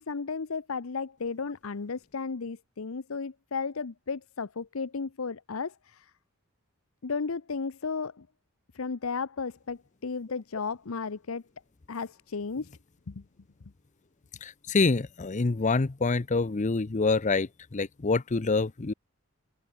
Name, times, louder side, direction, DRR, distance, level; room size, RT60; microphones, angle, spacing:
voice 1, 0.0-6.1 7.0-8.3 8.7-11.4 11.9-12.7 13.1-13.2, left 5 dB, 75° left, 0.7 m, -34 dB
voice 2, 14.4-18.9, left 3 dB, 35° left, 0.6 m, -26 dB
open air
head